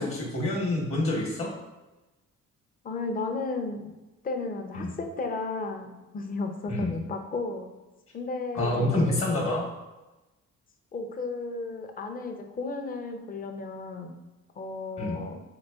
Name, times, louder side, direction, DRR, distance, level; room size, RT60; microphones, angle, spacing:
voice 1, 0.0-1.5 4.7-4.9 6.7-6.9 8.5-9.7 15.0-15.2, left 1 dB, 45° left, -2 dB, 0.9 m, -27 dB
voice 2, 2.8-3.9 4.2-7.7 8.1-9.2 10.9-14.1 14.6-15.4, left 3 dB, 30° left, 4 dB, 0.5 m, -34 dB
3.9 x 2.9 x 2.3 m, 1.1 s
cardioid pair, 90°, 30 cm